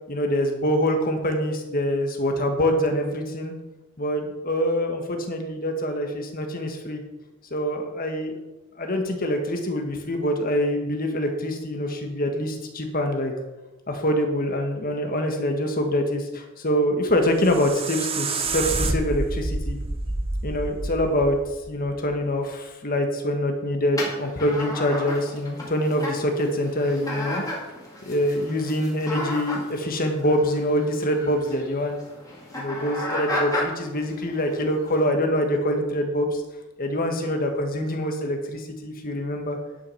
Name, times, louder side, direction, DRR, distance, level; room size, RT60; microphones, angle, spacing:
voice 1, 0.1-3.5 4.0-7.0 7.5-8.4 8.7-13.3 13.9-19.8 20.4-21.4 21.7-27.4 28.0-32.0 32.5-36.4 36.8-39.6, equal, 45° left, 3 dB, 1.6 m, -25 dB
sound 1, 17.2-22.2, right 3 dB, 25° right, 0.7 m, -29 dB
sound 2, 24.0-35.0, left 1 dB, 15° left, 2.3 m, -34 dB
10.5 x 6.1 x 5.7 m, 1.1 s
head